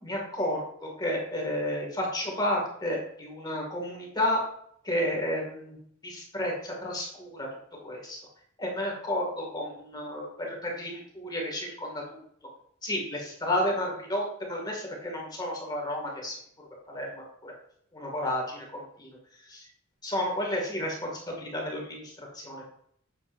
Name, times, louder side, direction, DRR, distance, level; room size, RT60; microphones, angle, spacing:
voice 1, 0.0-4.4 4.8-7.5 7.8-8.2 8.6-12.2 12.8-16.3 16.9-17.5 17.9-19.2 19.5-19.6 20.0-22.6, left 1 dB, 20° left, -2 dB, 2.1 m, -32 dB
8.5 x 8.3 x 2.6 m, 0.68 s
head